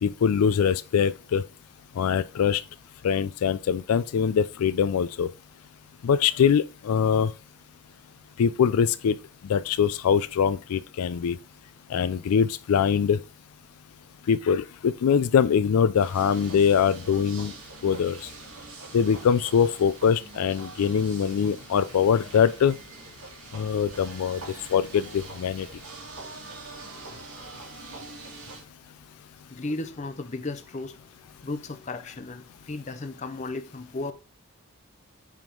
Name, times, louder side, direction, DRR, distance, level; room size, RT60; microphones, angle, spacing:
voice 1, 0.0-1.5 1.9-2.6 3.0-5.3 6.0-7.3 8.4-9.2 9.4-11.4 11.9-13.2 14.3-17.5 17.8-18.3 18.9-22.8 23.5-25.8, left 7 dB, 85° left, 0.4 m, -23 dB
sound 1, 15.9-28.6, right 3 dB, 85° right, 2.3 m, -44 dB
voice 2, 29.5-34.1, left 2 dB, 30° left, 0.6 m, -35 dB
7.5 x 3.6 x 3.8 m
head